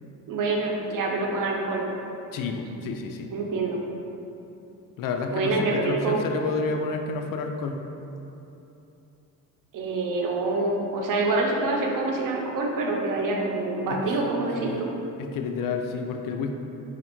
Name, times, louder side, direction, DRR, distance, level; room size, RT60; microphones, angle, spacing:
voice 1, 0.3-1.9 3.3-3.8 5.3-6.2 9.7-14.9, right 3 dB, 70° right, 0 dB, 0.7 m, -26 dB
voice 2, 2.3-3.3 5.0-7.8 13.9-14.0 14.6-14.8 15.2-16.5, left 4 dB, 75° left, 4 dB, 0.5 m, -30 dB
4.1 x 2.5 x 4.4 m, 2.9 s
cardioid pair, 100°, 33 cm